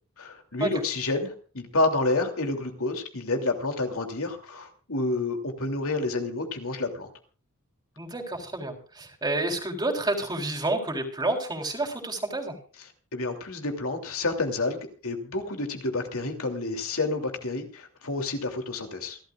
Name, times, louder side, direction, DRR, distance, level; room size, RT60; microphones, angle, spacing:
voice 1, 0.2-7.1 13.1-19.2, left 2 dB, 70° left, 4 dB, 2.9 m, -29 dB
voice 2, 8.0-12.5, right 2 dB, 20° right, 1 dB, 3.6 m, -29 dB
28.0 x 13.0 x 2.5 m, 0.39 s
head